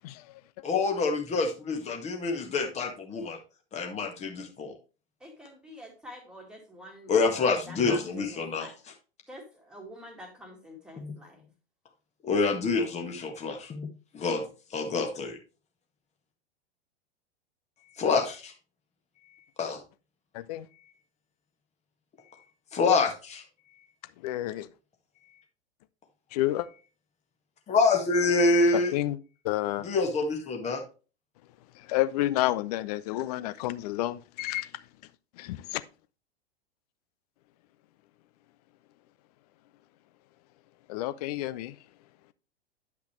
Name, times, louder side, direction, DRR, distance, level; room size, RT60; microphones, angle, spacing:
voice 1, 0.6-3.4 3.7-4.8 7.1-8.9 11.0-11.1 12.2-13.8 14.1-14.5 14.7-15.4 18.0-18.5 19.6-19.8 22.7-23.4 27.7-29.0 29.8-30.8, left 3 dB, 20° left, 1.7 m, -26 dB
voice 2, 5.2-7.1 7.7-8.1 8.3-8.7 9.3-11.4, equal, ahead, 2.1 m, -46 dB
voice 3, 20.3-20.7 24.2-24.7 26.3-26.7 28.7-29.2 29.4-29.9 31.9-34.7 35.4-35.8 40.9-41.7, left 15 dB, 40° left, 0.5 m, -30 dB
9.7 x 5.8 x 3.1 m
figure-of-eight pair, 95°, 31 cm